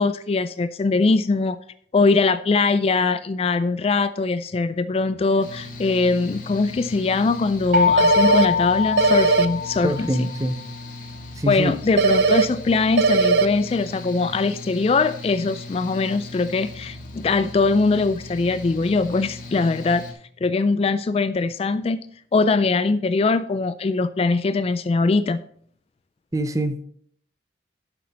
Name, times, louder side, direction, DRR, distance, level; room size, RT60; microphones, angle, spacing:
voice 1, 0.0-1.6 1.9-10.3 11.5-20.0 20.4-22.1 22.3-25.4, left 3 dB, 35° left, 13 dB, 0.3 m, -21 dB
Mechanical fan, 5.4-20.1, left 2 dB, 50° left, 2.0 m, -38 dB
sound 1, 7.7-10.5, left 6 dB, 50° right, 1.1 m, -23 dB
sound 2, 8.0-8.5 9.0-9.5 12.0-12.5 13.0-13.5, right 4 dB, 65° right, 0.5 m, -17 dB
voice 2, 9.8-10.6 11.4-11.8 26.3-26.8, right 1 dB, 20° right, 9 dB, 0.6 m, -24 dB
11.5 x 5.8 x 4.1 m, 0.62 s
head